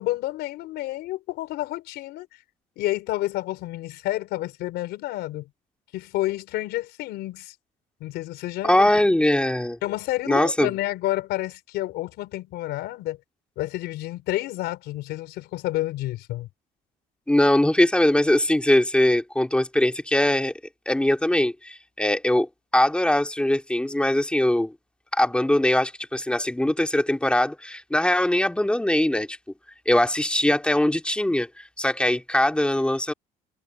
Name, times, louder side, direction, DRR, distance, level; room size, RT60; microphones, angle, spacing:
voice 1, 0.0-2.3 2.8-5.5 5.9-7.5 8.0-8.9 9.8-13.2 13.6-16.5, left 16 dB, 85° left, 4.3 m, -29 dB
voice 2, 8.6-9.8 10.3-10.7 17.3-20.5 20.9-24.7 25.1-29.4 29.9-33.1, left 1 dB, 5° left, 2.4 m, -21 dB
cardioid pair, 110°, 17 cm